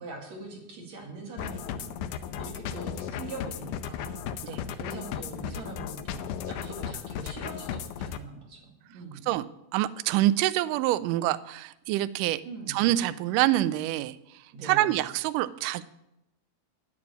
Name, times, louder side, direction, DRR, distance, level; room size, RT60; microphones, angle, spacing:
voice 1, 0.0-9.3 12.4-12.8 14.5-15.0, right 3 dB, 55° right, -1 dB, 3.1 m, -43 dB
sound 1, 1.4-8.2, left 8 dB, 75° left, 1.9 m, -35 dB
voice 2, 9.7-12.4 12.7-14.2 14.6-15.8, right 15 dB, 80° right, 13 dB, 2.0 m, -26 dB
9.9 x 8.7 x 8.2 m, 0.87 s
omnidirectional pair, 4.1 m